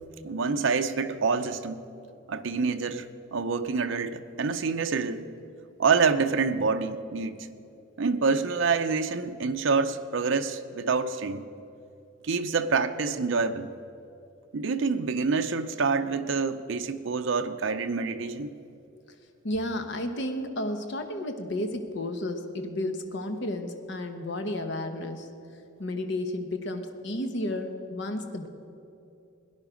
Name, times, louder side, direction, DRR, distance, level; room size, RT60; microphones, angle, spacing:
voice 1, 0.2-1.8 2.3-5.3 5.8-7.5 8.0-11.5 12.2-13.7 14.5-18.5, right 4 dB, 70° right, 7 dB, 0.6 m, -27 dB
voice 2, 19.4-25.3 25.8-28.5, left 1 dB, 60° left, 6 dB, 1.0 m, -32 dB
17.5 x 10.5 x 5.1 m, 2.7 s
head